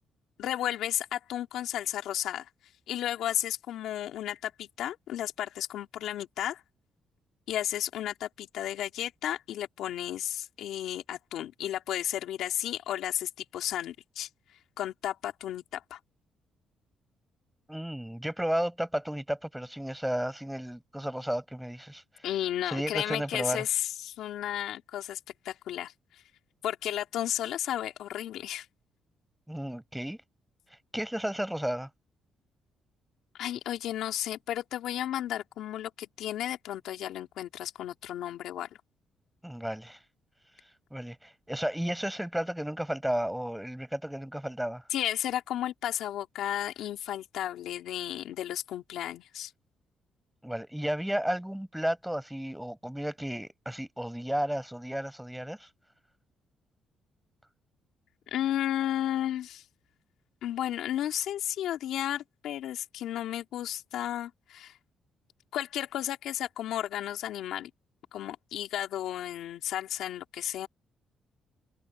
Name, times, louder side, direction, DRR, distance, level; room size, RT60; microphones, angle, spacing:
voice 1, 0.4-2.5 2.9-6.6 7.5-14.3 14.8-16.0 22.2-25.2 25.4-25.9 26.6-28.7 33.3-38.7 44.9-49.5 58.3-59.6 60.4-64.7 65.5-67.7 68.1-70.7, left 12 dB, 80° left, 3.1 m, -33 dB
voice 2, 17.7-22.0 22.6-23.6 29.5-30.2 30.9-31.9 39.4-40.0 40.9-44.8 50.4-55.7, equal, 5° right, 4.8 m, -33 dB
cardioid pair, 90°, 0 cm